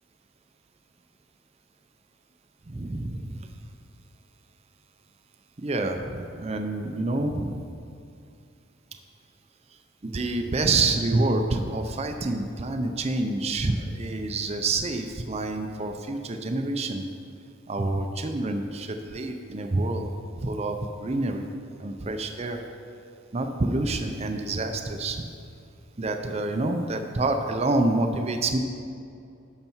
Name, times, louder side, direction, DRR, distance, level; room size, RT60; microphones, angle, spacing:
voice 1, 2.7-3.5 5.6-7.6 10.0-17.0 17.7-21.5 21.8-22.6 23.3-25.2 26.0-28.6, right 2 dB, 30° right, 5 dB, 0.5 m, -27 dB
11.0 x 6.7 x 4.5 m, 2.5 s
head